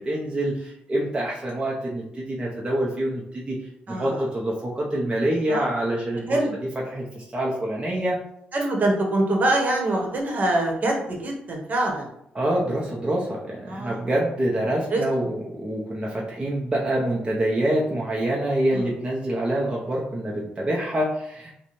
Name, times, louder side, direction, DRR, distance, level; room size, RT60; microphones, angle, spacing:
voice 1, 0.0-3.6 3.9-6.4 6.9-8.2 12.3-21.5, right 1 dB, 25° right, -4 dB, 0.7 m, -26 dB
voice 2, 3.9-4.3 5.5-5.7 6.3-6.5 8.5-12.1 13.7-14.0 14.9-15.0 18.7-18.9, right 1 dB, 50° right, 0 dB, 1.1 m, -24 dB
4.7 x 2.2 x 3.0 m, 0.75 s
cardioid pair, 85°, 4 cm